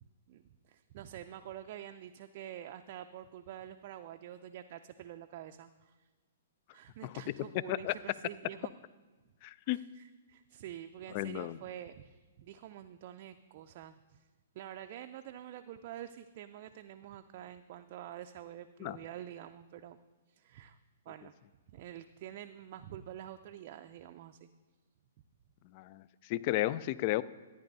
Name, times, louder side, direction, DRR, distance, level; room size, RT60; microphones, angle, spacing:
voice 1, 0.3-6.1 6.7-8.7 9.7-14.3 14.5-20.0 20.3-20.8 21.1-21.3 21.7-24.5, right 11 dB, 50° right, 7 dB, 0.4 m, -47 dB
voice 2, 9.4-9.8 11.1-11.6 18.8-19.0 25.7-27.2, left 16 dB, 40° left, 17 dB, 0.3 m, -33 dB
13.5 x 9.2 x 2.7 m, 1.3 s
hypercardioid pair, 125°, 0 cm